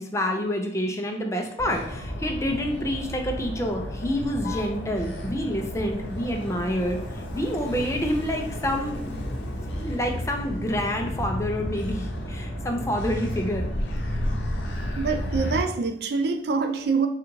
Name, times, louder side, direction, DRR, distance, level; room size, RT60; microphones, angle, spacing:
voice 1, 0.0-9.2 9.7-13.7, equal, 15° left, 3 dB, 0.5 m, -28 dB
Motor vehicle (road), 1.6-15.6, left 1 dB, 85° left, 0.7 m, -32 dB
voice 2, 15.0-17.1, right 4 dB, 60° right, 6 dB, 0.4 m, -25 dB
3.8 x 2.5 x 4.5 m, 0.71 s
head